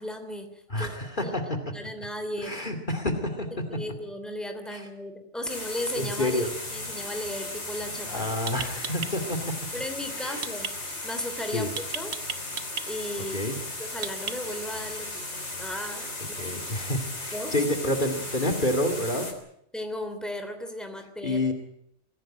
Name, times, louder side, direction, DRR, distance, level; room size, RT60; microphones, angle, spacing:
voice 1, 0.0-1.3 1.7-2.6 3.7-8.3 9.7-10.7 11.0-11.7 11.9-12.2 12.9-13.5 13.8-16.4 17.3-17.5 19.7-21.5, left 1 dB, ahead, 7 dB, 3.0 m, -36 dB
voice 2, 0.7-1.4 2.4-3.5 4.7-4.9 6.0-6.5 8.0-9.5 10.1-10.5 11.5-11.7 13.3-13.6 16.2-19.3 21.2-21.5, left 1 dB, 45° left, 4 dB, 2.7 m, -28 dB
sound 1, 5.5-19.3, left 2 dB, 75° left, 3.9 m, -36 dB
sound 2, 8.5-9.1 10.4-10.7 11.8-12.9 14.0-14.6, right 7 dB, 70° right, 1.3 m, -33 dB
23.5 x 16.5 x 8.9 m, 0.75 s
omnidirectional pair, 1.2 m